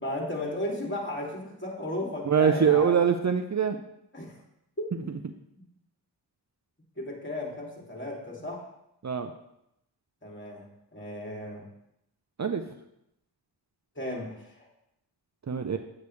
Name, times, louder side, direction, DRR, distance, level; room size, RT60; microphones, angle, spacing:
voice 1, 0.0-2.9 4.1-4.4 5.0-5.1 7.0-8.7 10.2-11.6 13.9-14.7, left 1 dB, 25° left, -2 dB, 2.7 m, -35 dB
voice 2, 2.3-3.8 9.0-9.3 12.4-12.6 15.5-15.8, right 7 dB, 40° right, 7 dB, 0.6 m, -23 dB
8.9 x 8.2 x 3.2 m, 0.81 s
cardioid pair, 50°, 42 cm